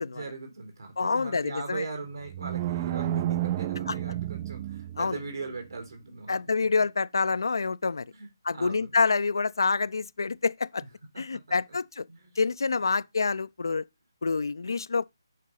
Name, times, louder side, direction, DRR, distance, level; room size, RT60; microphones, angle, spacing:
voice 1, 0.1-6.4 8.1-8.3 8.5-8.9 11.3-11.8 12.1-12.4 12.8-13.0, right 3 dB, 70° right, 3.6 m, -40 dB
voice 2, 1.0-1.8 3.9-4.0 5.0-5.2 6.3-8.0 8.4-10.8 11.2-12.0 12.4-13.8 14.2-15.0, left 4 dB, 65° left, 0.4 m, -27 dB
sound 1, 2.3-5.3, right 12 dB, 25° right, 0.3 m, -31 dB
7.4 x 5.4 x 4.1 m
figure-of-eight pair, 150°, 2 cm